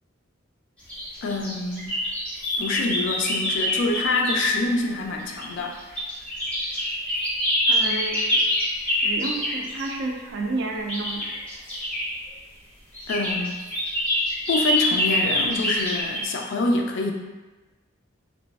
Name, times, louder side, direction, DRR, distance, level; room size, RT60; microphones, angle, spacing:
sound 1, 0.9-4.5 5.2-9.9 10.9-12.1 12.9-16.2, left 1 dB, 5° left, 0.6 m, -25 dB
voice 1, 1.2-2.0 2.6-5.8 13.1-13.6 14.5-17.1, left 2 dB, 55° left, 2 dB, 0.3 m, -26 dB
voice 2, 7.7-8.4 8.8-11.3, right 2 dB, 50° right, 2 dB, 0.3 m, -31 dB
3.0 x 2.4 x 2.3 m, 1.2 s
head